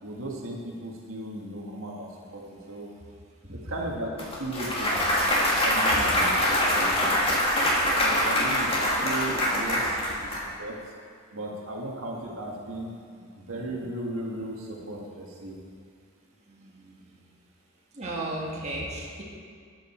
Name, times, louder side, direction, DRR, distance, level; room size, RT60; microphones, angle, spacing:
voice 1, 0.0-2.9 3.6-4.1 4.4-5.0 5.5-7.4 8.0-10.8 11.3-13.0 13.4-15.6, right 1 dB, 70° right, -2 dB, 1.7 m, -36 dB
Clapping / Cheering / Applause, 4.2-10.4, left 1 dB, 25° left, 2.1 m, -24 dB
voice 2, 13.0-13.3 16.5-17.2 17.9-19.2, right 1 dB, 30° right, -5 dB, 1.8 m, -36 dB
13.0 x 9.2 x 4.4 m, 2.2 s
head